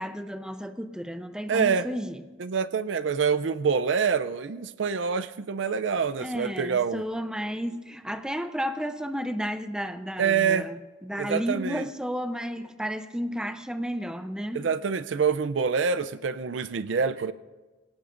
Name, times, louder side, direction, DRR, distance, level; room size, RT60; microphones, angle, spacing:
voice 1, 0.0-2.2 6.2-14.7, equal, 5° right, 0.6 m, -32 dB
voice 2, 1.5-1.9 2.4-7.0 10.2-10.7 11.2-11.8 14.5-17.3, right 6 dB, 65° right, 0.5 m, -26 dB
24.0 x 17.5 x 2.5 m
head